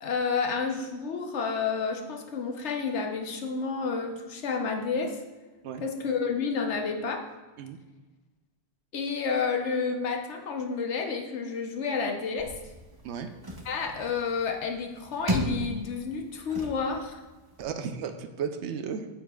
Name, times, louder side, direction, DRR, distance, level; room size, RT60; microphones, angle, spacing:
voice 1, 0.0-5.2 5.8-7.2 8.9-12.5 13.6-17.2, left 5 dB, 85° left, 4 dB, 1.2 m, -30 dB
sound 1, 12.4-17.6, right 1 dB, 25° right, 0.8 m, -36 dB
voice 2, 17.6-19.1, right 7 dB, 85° right, 8 dB, 1.0 m, -34 dB
8.8 x 8.5 x 2.4 m, 1.2 s
omnidirectional pair, 1.1 m